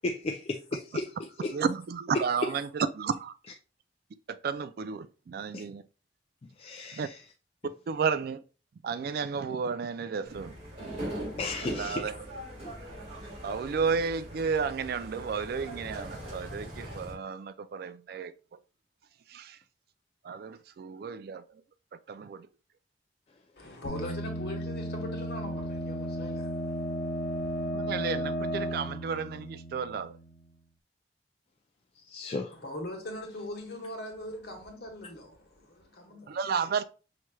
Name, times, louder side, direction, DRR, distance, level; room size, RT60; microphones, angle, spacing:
voice 1, 0.0-1.5 2.1-2.5 5.5-5.6 6.6-7.2 11.4-12.1 32.0-32.6, left 2 dB, 35° left, 0.4 m, -34 dB
voice 2, 1.5-3.3 4.3-5.8 6.9-7.1 7.9-8.4 8.8-10.5 11.7-12.2 13.4-18.3 19.3-19.6 20.2-21.4 22.1-22.5 27.7-30.2 36.3-36.8, right 5 dB, 55° right, 0.3 m, -32 dB
sound 1, 10.2-17.1, right 1 dB, 35° right, 1.9 m, -41 dB
voice 3, 23.6-27.7 32.5-36.4, left 1 dB, 60° left, 1.2 m, -41 dB
sound 2, 23.8-30.4, equal, 85° left, 0.6 m, -34 dB
5.8 x 3.1 x 2.2 m
head